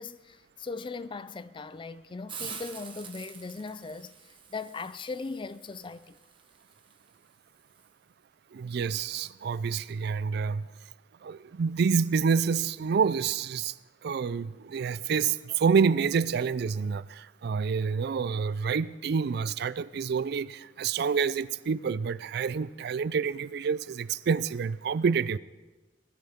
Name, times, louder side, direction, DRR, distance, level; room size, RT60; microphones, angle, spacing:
voice 1, 0.0-6.2, left 4 dB, 25° left, 0.4 m, -39 dB
Hiss, 2.3-7.9, right 6 dB, 30° right, 1.3 m, -46 dB
voice 2, 8.5-10.7 11.2-13.7 14.0-25.4, right 6 dB, 60° right, 0.4 m, -28 dB
20.0 x 13.0 x 3.6 m
head